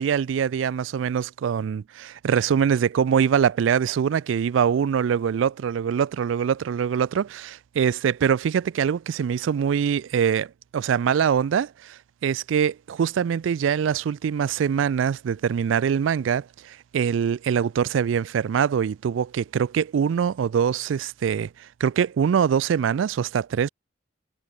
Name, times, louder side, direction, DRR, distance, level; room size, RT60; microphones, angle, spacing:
voice 1, 0.0-21.5 21.8-23.7, right 7 dB, 90° right, 0.3 m, -23 dB
head